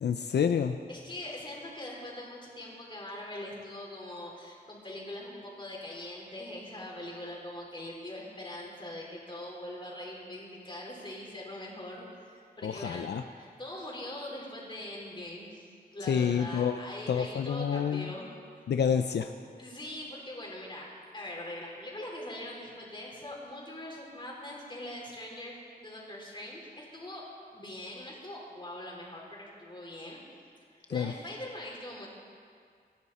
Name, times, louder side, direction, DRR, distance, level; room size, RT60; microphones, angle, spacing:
voice 1, 0.0-0.8 12.6-13.2 16.1-16.8 17.1-18.1 18.7-19.3 30.9-31.1, left 7 dB, 80° left, 7 dB, 0.5 m, -28 dB
voice 2, 0.9-13.1 13.4-18.3 19.6-27.2 27.5-30.2 30.7-32.1, left 1 dB, 30° left, -3 dB, 4.2 m, -42 dB
25.0 x 10.5 x 4.2 m, 2.1 s
wide cardioid pair, 90°, 17 cm